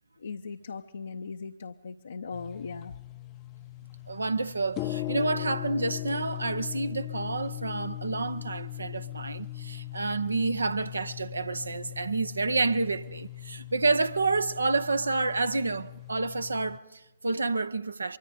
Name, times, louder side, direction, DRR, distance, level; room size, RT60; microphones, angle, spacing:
voice 1, 0.2-2.9, left 5 dB, 65° left, 0.8 m, -39 dB
sound 1, 2.3-16.8, left 17 dB, 25° left, 0.6 m, -39 dB
voice 2, 4.1-18.2, right 3 dB, 75° right, 0.8 m, -29 dB
25.0 x 23.5 x 5.3 m
figure-of-eight pair, 120°, 0 cm